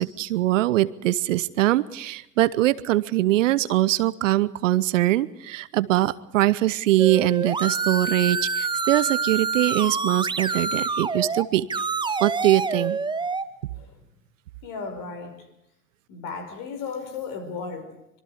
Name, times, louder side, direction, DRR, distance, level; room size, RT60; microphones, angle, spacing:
voice 1, 0.0-11.7 12.2-13.0, right 15 dB, 65° right, 0.9 m, -22 dB
sound 1, 7.0-11.4 11.7-13.4, right 4 dB, 10° right, 0.9 m, -27 dB
voice 2, 13.7-14.0 14.6-15.5 16.1-18.2, left 5 dB, 50° left, 5.2 m, -35 dB
25.5 x 23.0 x 4.9 m
figure-of-eight pair, 70°, 40 cm